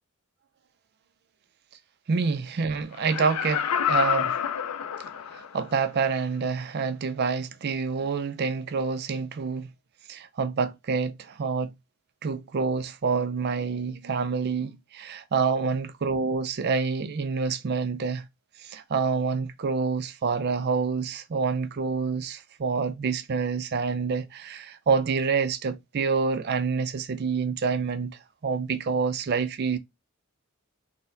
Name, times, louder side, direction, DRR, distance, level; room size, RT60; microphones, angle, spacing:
voice 1, 2.1-4.4 5.3-9.7 10.1-11.7 12.2-18.2 18.6-29.8, right 5 dB, 45° right, 0.4 m, -27 dB
Laughter, 3.0-5.6 6.1-6.2, left 8 dB, 80° left, 0.4 m, -28 dB
3.8 x 2.0 x 2.6 m
head